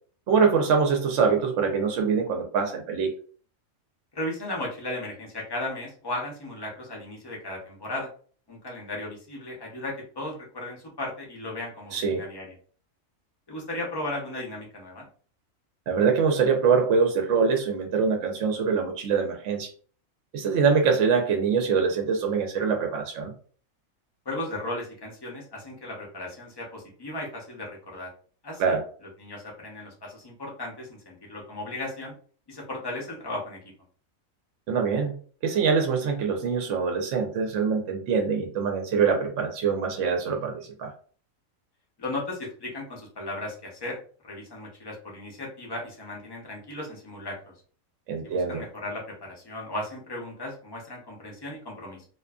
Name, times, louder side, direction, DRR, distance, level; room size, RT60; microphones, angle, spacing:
voice 1, 0.3-3.1 11.9-12.2 15.9-19.7 20.3-23.3 28.6-28.8 34.7-35.2 35.4-40.9 48.1-48.6, right 5 dB, 70° right, 3 dB, 0.8 m, -24 dB
voice 2, 4.1-8.1 8.5-12.5 13.5-15.1 24.3-28.1 28.4-28.8 29.2-32.1 32.5-33.6 42.0-44.0 44.2-47.5 48.2-52.0, left 1 dB, 35° left, -2 dB, 0.4 m, -36 dB
2.5 x 2.4 x 2.3 m, 0.43 s
omnidirectional pair, 1.4 m